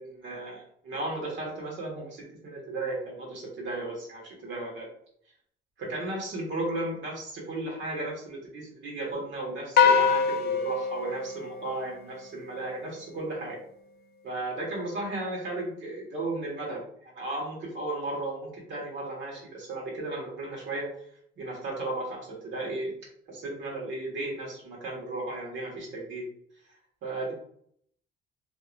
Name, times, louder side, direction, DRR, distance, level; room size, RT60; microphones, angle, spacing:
voice 1, 0.0-4.9 5.8-13.6 14.2-20.9 21.4-22.9 23.3-26.2 27.0-27.3, right 2 dB, 70° right, -2 dB, 1.5 m, -35 dB
sound 1, 9.8-12.3, left 6 dB, 55° left, 0.4 m, -24 dB
2.9 x 2.8 x 2.5 m, 0.65 s
cardioid pair, 90°, 20 cm